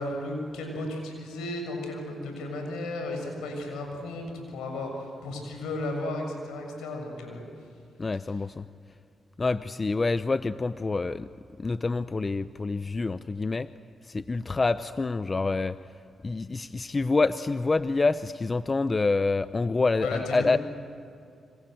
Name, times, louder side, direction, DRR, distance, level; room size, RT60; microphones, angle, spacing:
voice 1, 0.0-7.5 20.0-20.5, left 2 dB, 90° left, 3 dB, 6.9 m, -34 dB
voice 2, 8.0-8.7 9.4-11.3 11.6-13.7 14.1-15.8 16.2-20.6, left 3 dB, 40° left, 13 dB, 0.8 m, -27 dB
28.5 x 25.5 x 8.0 m, 2.5 s
supercardioid pair, 50°, 0 cm